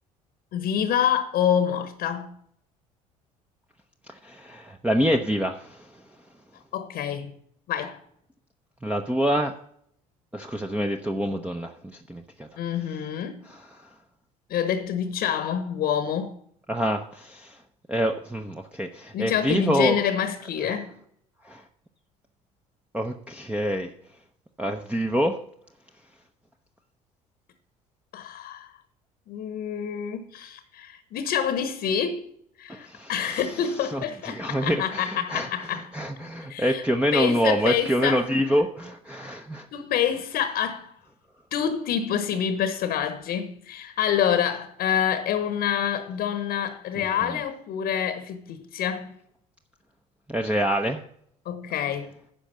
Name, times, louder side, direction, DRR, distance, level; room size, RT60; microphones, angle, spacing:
voice 1, 0.5-2.4 6.7-7.3 7.7-8.0 12.6-13.5 14.5-16.4 19.1-20.9 28.1-28.7 29.3-32.2 32.6-35.9 36.5-36.8 37.1-38.2 39.7-40.9 41.5-49.2 51.4-52.1, left 9 dB, 55° left, 1.0 m, -27 dB
voice 2, 4.1-5.9 8.8-9.5 10.3-12.5 13.4-13.9 16.7-17.6 17.9-20.0 20.6-20.8 21.4-21.6 22.9-23.9 24.6-25.4 32.7-39.7 46.9-47.4 50.3-51.0, equal, 5° right, 0.8 m, -27 dB
10.0 x 5.2 x 6.8 m
hypercardioid pair, 60°, 18 cm